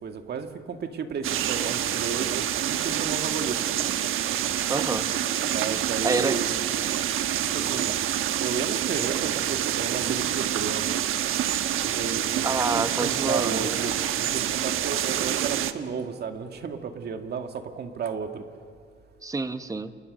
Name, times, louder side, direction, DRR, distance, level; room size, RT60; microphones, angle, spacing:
voice 1, 0.0-3.6 5.5-6.5 7.4-8.0 8.4-11.1 11.8-18.5, right 6 dB, 55° right, 6 dB, 2.0 m, -33 dB
sound 1, 1.2-15.7, right 11 dB, 90° right, 1.2 m, -27 dB
voice 2, 4.7-5.1 6.0-6.4 12.4-13.7 19.2-20.0, right 3 dB, 15° right, 11 dB, 0.9 m, -27 dB
29.5 x 28.5 x 6.7 m, 2.1 s
cardioid pair, 155°, 21 cm